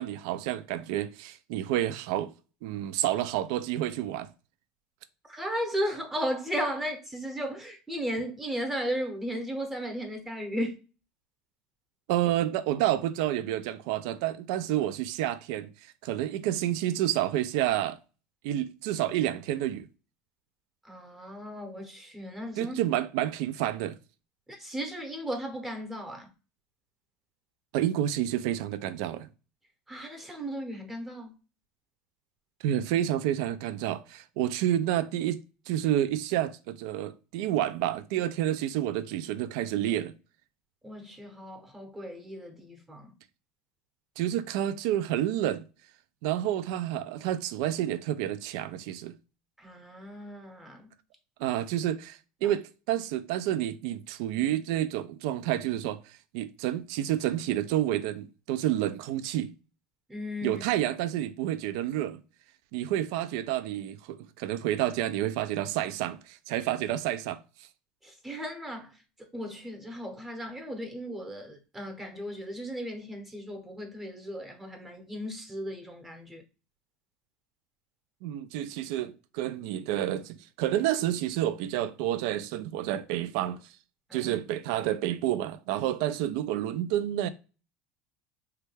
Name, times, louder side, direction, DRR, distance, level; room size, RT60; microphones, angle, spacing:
voice 1, 0.0-2.3 2.6-4.3 12.1-18.0 18.4-19.9 22.6-24.0 27.7-29.3 32.6-35.4 35.7-40.1 44.2-45.7 46.2-49.1 51.4-59.5 60.4-62.2 62.7-67.4 78.2-83.6 84.1-87.3, right 12 dB, 75° right, 0.3 m, -29 dB
voice 2, 5.3-10.7 20.8-22.8 24.5-26.3 29.9-31.3 40.8-43.1 49.6-50.9 60.1-60.6 68.0-68.9 69.2-76.4 84.1-84.3, equal, 10° right, 0.8 m, -35 dB
3.2 x 2.2 x 3.2 m
supercardioid pair, 135°, 3 cm